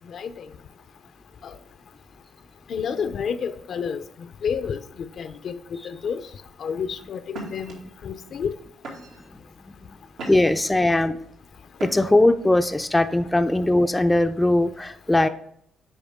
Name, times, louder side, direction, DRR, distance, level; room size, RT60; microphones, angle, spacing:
voice 1, 0.1-0.5 1.4-1.6 2.7-4.0 4.4-6.2 6.6-8.6, left 6 dB, 60° left, 0.6 m, -30 dB
sound 1, 6.5-6.7 7.3-7.7 8.4-8.5 8.8-9.3 9.8-10.7 11.7-12.3, right 2 dB, 85° right, 2.3 m, -38 dB
voice 2, 10.3-11.2 11.8-15.3, left 1 dB, 10° left, 0.4 m, -20 dB
8.8 x 5.0 x 3.5 m
cardioid pair, 90°, 0 cm